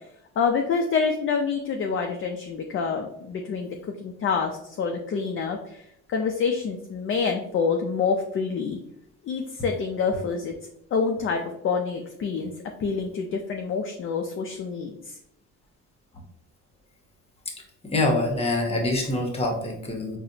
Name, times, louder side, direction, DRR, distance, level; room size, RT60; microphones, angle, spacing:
voice 1, 0.4-3.7 4.0-8.8 9.2-10.5 10.9-12.5 12.8-15.2, left 5 dB, 45° left, 3 dB, 0.4 m, -27 dB
voice 2, 17.8-20.2, left 2 dB, 20° left, 1 dB, 0.8 m, -25 dB
4.1 x 2.0 x 2.7 m, 0.76 s
cardioid pair, 90°, 30 cm